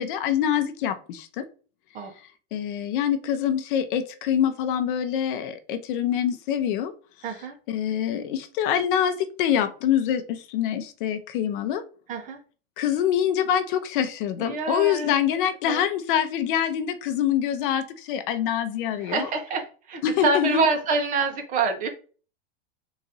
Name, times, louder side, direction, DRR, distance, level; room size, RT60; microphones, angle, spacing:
voice 1, 0.0-1.5 2.5-6.9 7.7-11.8 12.8-19.3 20.0-20.6, left 9 dB, 60° left, 10 dB, 0.7 m, -25 dB
voice 2, 7.2-7.5 12.1-12.4 14.4-15.2 15.7-15.8 19.0-21.9, right 3 dB, 25° right, 5 dB, 0.7 m, -26 dB
4.0 x 2.5 x 3.9 m, 0.38 s
supercardioid pair, 155°, 30 cm